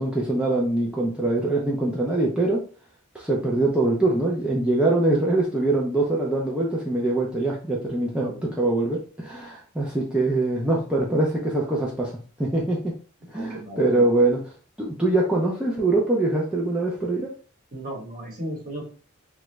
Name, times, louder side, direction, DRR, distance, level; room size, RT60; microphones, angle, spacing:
voice 1, 0.0-2.6 3.1-12.9 13.3-14.4 14.8-17.3, right 2 dB, 5° right, -4 dB, 0.4 m, -23 dB
voice 2, 8.2-8.6 13.3-14.1 17.7-18.8, right 1 dB, 40° right, -1 dB, 1.1 m, -36 dB
3.0 x 2.3 x 3.1 m, 0.39 s
head